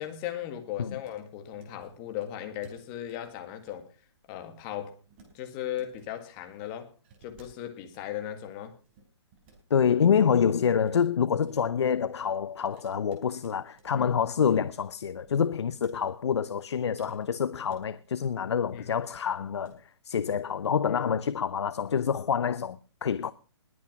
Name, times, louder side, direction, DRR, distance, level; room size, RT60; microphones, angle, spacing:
voice 1, 0.0-3.9 4.3-5.0 5.3-6.9 7.2-8.7 13.9-14.1 18.7-18.9 20.9-21.0, left 11 dB, 20° left, 1.9 m, -37 dB
sound 1, 1.0-1.2 1.5-1.9 2.2-2.3 2.6-3.7 4.0-4.2 4.5-5.3 5.6-6.1 7.0-8.0 8.5-9.6 9.9-10.2 10.5-11.6 12.7-14.2 14.5-14.9 15.2-16.1 17.0-18.3 18.9-19.2 19.5-19.8 20.1-20.5, right 4 dB, 25° right, 4.4 m, -57 dB
voice 2, 9.7-23.3, left 7 dB, 70° left, 0.8 m, -27 dB
20.5 x 8.6 x 6.1 m
hypercardioid pair, 170°, 15 cm